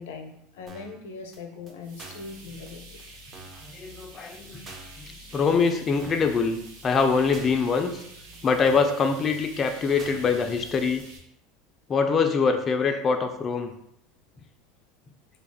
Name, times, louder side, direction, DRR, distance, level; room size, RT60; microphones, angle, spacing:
voice 1, 0.0-3.0, left 4 dB, 90° left, 5 dB, 0.5 m, -40 dB
sound 1, 0.7-1.0 1.3-1.4 1.7-1.8 2.0-2.3 2.7-2.8 3.0-3.1 3.3-3.7 4.0-4.1 4.3-4.4 4.7-5.0 5.3-5.4 5.7-5.8 6.0-6.3 6.7-6.8 7.0-7.1 7.3-7.7 8.0-8.1 8.3-8.4 8.7-9.0 9.3-9.4 9.7-9.8 10.0-10.3 10.7-10.8 11.0-11.1, right 3 dB, 30° right, 0.7 m, -46 dB
sound 2, 1.8-11.2, right 1 dB, 80° right, 0.9 m, -47 dB
voice 2, 3.6-4.7 5.1-8.0 8.4-11.0 11.9-13.7, left 5 dB, 30° left, 5 dB, 0.3 m, -24 dB
3.4 x 2.3 x 3.4 m, 0.74 s
supercardioid pair, 115°, 0 cm